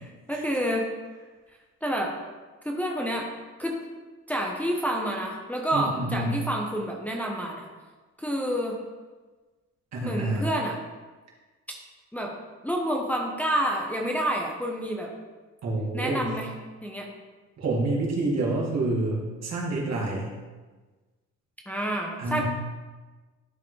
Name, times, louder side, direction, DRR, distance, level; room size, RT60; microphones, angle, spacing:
voice 1, 0.3-0.8 1.8-2.1 2.6-3.3 3.6-3.7 4.3-7.7 8.2-8.8 10.0-10.8 12.1-12.3 12.6-15.1 15.9-16.5 16.8-17.1 21.7-22.4, equal, 5° left, -1 dB, 0.9 m, -28 dB
voice 2, 5.7-6.4 9.9-10.5 15.6-16.3 17.6-20.3 22.2-22.4, right 2 dB, 60° right, -4 dB, 2.1 m, -28 dB
10.5 x 3.7 x 3.2 m, 1.3 s
cardioid pair, 90°, 30 cm